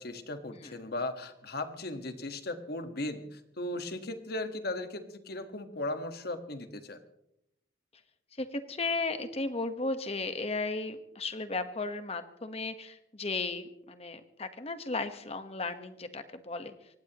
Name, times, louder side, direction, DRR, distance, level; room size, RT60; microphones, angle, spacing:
voice 1, 0.0-7.0, left 2 dB, 60° left, 8 dB, 1.6 m, -37 dB
voice 2, 8.4-16.7, left 3 dB, 35° left, 9 dB, 1.3 m, -35 dB
24.5 x 18.5 x 3.0 m, 0.82 s
head